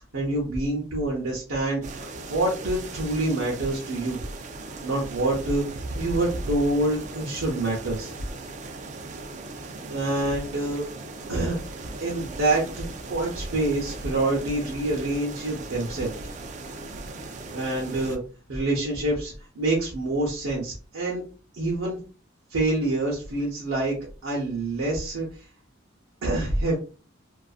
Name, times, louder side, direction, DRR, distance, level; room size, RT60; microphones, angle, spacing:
voice 1, 0.1-4.2 4.8-5.7 5.9-8.1 9.6-10.9 11.3-16.1 17.5-18.2 18.5-21.2 21.5-22.0 22.5-24.0 24.2-25.5 26.2-26.8, right 2 dB, 85° right, -3 dB, 0.7 m, -26 dB
sound 1, 1.8-18.2, right 2 dB, 35° right, 0.3 m, -38 dB
2.5 x 2.3 x 2.4 m, 0.37 s
head